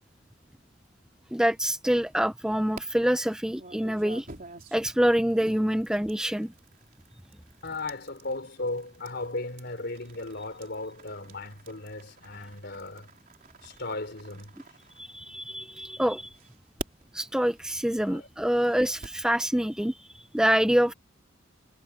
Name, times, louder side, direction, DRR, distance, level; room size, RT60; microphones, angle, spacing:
voice 1, 1.3-4.3 4.7-6.5 15.0-16.3 17.1-20.1 20.3-20.9, equal, 5° right, 0.5 m, -26 dB
sound 1, 1.9-2.8 3.5-15.6 16.2-19.3, right 3 dB, 45° right, 3.8 m, -48 dB
voice 2, 7.6-13.1 13.6-14.5 18.0-18.3 18.5-18.6, left 2 dB, 55° left, 3.9 m, -36 dB
head